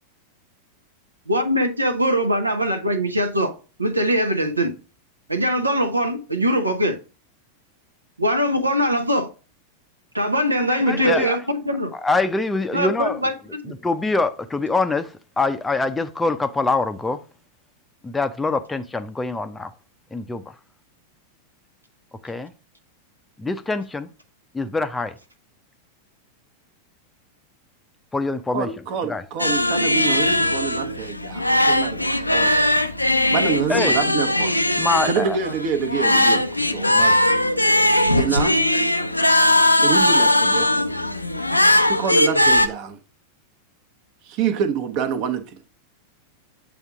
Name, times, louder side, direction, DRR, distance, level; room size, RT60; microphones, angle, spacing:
voice 1, 1.3-4.7 5.3-7.0 8.2-9.3 10.1-11.9 12.7-13.3 13.6-13.7, equal, 80° right, 0.9 m, -22 dB
voice 2, 10.7-11.4 11.9-13.2 13.7-17.2 18.0-19.7 20.1-20.6 22.2-22.5 23.4-24.1 24.5-25.1 28.1-28.7 29.0-29.2 33.7-34.0 34.8-35.4, left 3 dB, 10° left, 0.5 m, -24 dB
voice 3, 28.5-32.5 33.3-34.6 35.0-36.5 36.7-37.1 38.1-38.5 39.8-40.7 41.9-43.0 44.3-45.6, right 6 dB, 45° right, 1.0 m, -26 dB
sound 1, 29.4-42.7, left 1 dB, 85° left, 0.4 m, -19 dB
8.1 x 3.5 x 3.5 m
figure-of-eight pair, 90°, 0 cm